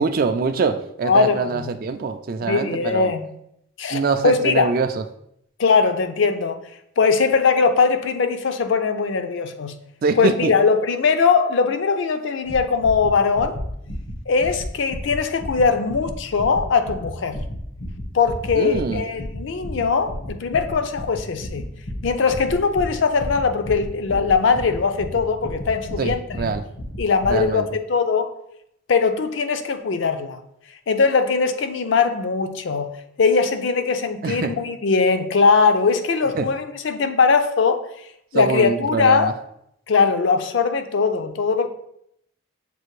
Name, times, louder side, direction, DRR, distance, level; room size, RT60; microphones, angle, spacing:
voice 1, 0.0-3.1 3.9-5.0 10.0-10.5 18.6-19.0 26.0-26.6 27.3-27.7 34.2-34.5 36.3-36.5 38.3-39.3, right 4 dB, 45° right, 9 dB, 0.3 m, -23 dB
voice 2, 1.0-1.7 2.5-3.3 3.8-4.7 5.6-6.6 7.0-9.7 10.2-13.6 14.3-17.4 18.1-21.6 22.0-26.5 27.0-28.3 28.9-30.4 30.9-32.9 33.2-37.8 38.3-39.3 39.9-41.7, left 5 dB, 60° left, 8 dB, 0.4 m, -20 dB
sound 1, 12.5-27.5, equal, 90° left, 1.1 m, -33 dB
6.8 x 2.5 x 3.1 m, 0.74 s
head